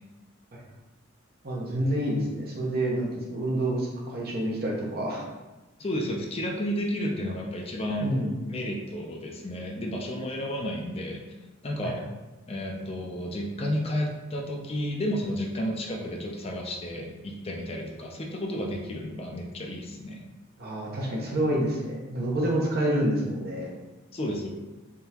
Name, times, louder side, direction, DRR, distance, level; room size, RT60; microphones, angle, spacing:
voice 1, 1.4-5.2 8.0-8.4 11.8-12.0 20.6-23.7, right 1 dB, 50° right, -3 dB, 1.0 m, -28 dB
voice 2, 5.8-8.1 8.5-11.2 11.6-12.0 12.5-20.2 24.1-24.5, equal, 30° left, 0 dB, 0.5 m, -32 dB
3.7 x 3.4 x 2.9 m, 1.1 s
head